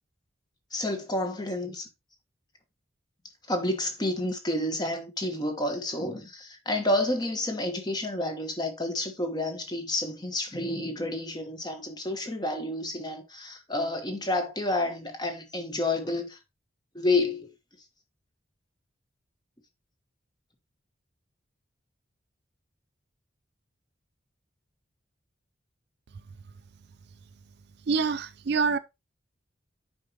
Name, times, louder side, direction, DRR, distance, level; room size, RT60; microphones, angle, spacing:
voice 1, 0.7-1.9 3.5-16.4 16.9-17.5, left 2 dB, 20° left, 1.1 m, -30 dB
voice 2, 27.9-28.8, right 5 dB, 55° right, 0.4 m, -25 dB
8.6 x 5.0 x 2.9 m
head